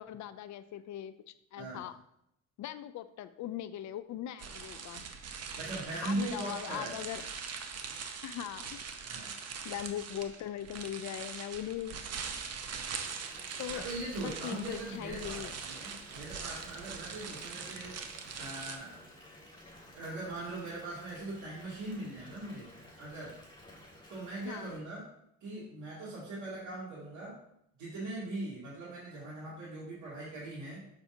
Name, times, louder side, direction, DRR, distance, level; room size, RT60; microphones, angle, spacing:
voice 1, 0.0-1.9 2.6-5.1 6.0-7.2 8.2-8.8 9.6-12.0 13.6-13.8 14.2-15.6 24.4-24.8, left 11 dB, 70° left, 12 dB, 0.4 m, -40 dB
sound 1, 4.4-18.8, right 6 dB, 55° right, 0.8 m, -42 dB
voice 2, 5.6-7.0 9.1-9.3 13.7-18.0 18.3-19.0 19.9-22.7 23.0-23.3 24.1-25.1 25.4-27.4 27.8-30.8, right 2 dB, 75° right, -8 dB, 2.6 m, -40 dB
Water tap faucet / Bathtub (filling or washing) / Fill (with liquid), 13.0-24.8, left 1 dB, 15° left, 2.4 m, -54 dB
6.8 x 5.5 x 2.8 m, 0.76 s
cardioid pair, 90°, 30 cm